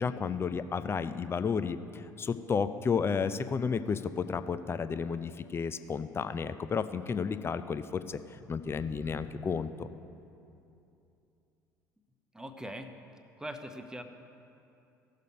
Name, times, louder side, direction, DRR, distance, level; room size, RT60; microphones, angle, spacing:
voice 1, 0.0-8.2 8.5-9.9, left 6 dB, 25° left, 12 dB, 0.5 m, -32 dB
sound 1, 8.3-10.6, left 3 dB, 65° left, 1.7 m, -53 dB
voice 2, 12.3-12.9 13.4-14.0, equal, 5° right, 7 dB, 0.9 m, -41 dB
16.5 x 6.7 x 5.2 m, 2.7 s
figure-of-eight pair, 60°, 10 cm